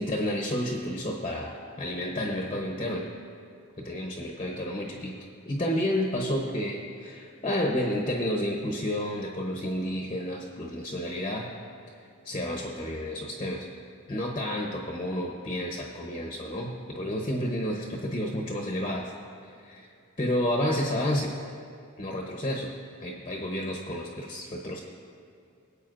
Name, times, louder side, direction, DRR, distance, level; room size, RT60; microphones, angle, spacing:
voice 1, 0.0-3.0 3.8-5.2 5.4-11.5 12.2-13.7 14.1-19.1 19.6-19.9 20.2-21.3 22.0-22.7 23.0-24.8, left 1 dB, 25° left, 0 dB, 0.8 m, -30 dB
23.0 x 8.2 x 2.5 m, 2.5 s
head